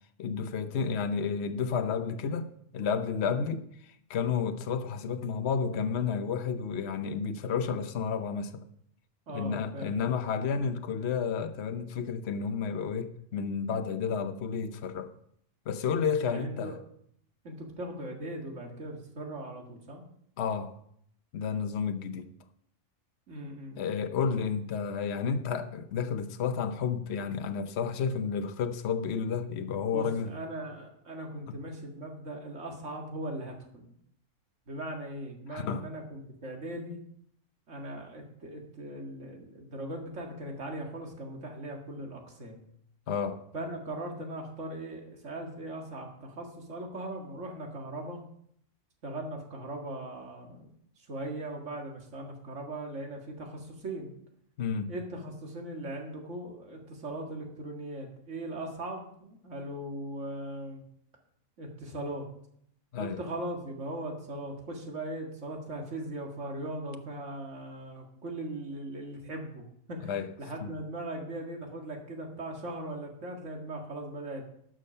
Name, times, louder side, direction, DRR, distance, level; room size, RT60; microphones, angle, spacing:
voice 1, 0.2-2.5 2.7-3.6 4.1-8.6 9.3-15.1 15.7-16.7 20.4-20.8 21.3-22.3 23.8-30.3 35.5-35.8 43.1-43.4 54.6-54.9 62.9-63.2 70.1-70.3 70.6-70.7, left 6 dB, 60° left, 1.0 m, -31 dB
voice 2, 9.3-10.0 16.3-16.8 17.4-20.0 23.3-23.9 29.8-34.0 34.7-37.0 37.7-42.6 43.5-48.2 49.0-54.1 54.9-60.8 61.6-62.3 63.0-74.5, right 1 dB, 70° right, 2.2 m, -39 dB
12.0 x 6.4 x 5.5 m
omnidirectional pair, 1.3 m